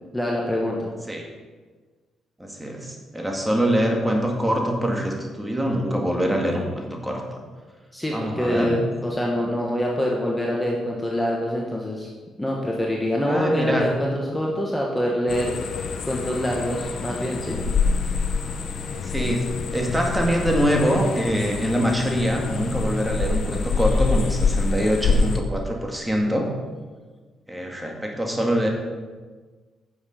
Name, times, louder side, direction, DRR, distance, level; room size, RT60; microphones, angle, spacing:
voice 1, 0.1-0.9 7.9-12.1 12.4-15.5 16.0-17.6, equal, 10° left, -2 dB, 1.5 m, -25 dB
voice 2, 2.4-7.4 8.1-8.8 13.2-13.8 19.0-26.5 27.5-28.7, equal, 10° right, 1 dB, 1.9 m, -24 dB
sound 1, 15.3-25.4, left 4 dB, 60° left, 0.9 m, -26 dB
9.8 x 7.2 x 5.2 m, 1.4 s
cardioid pair, 90°, 0 cm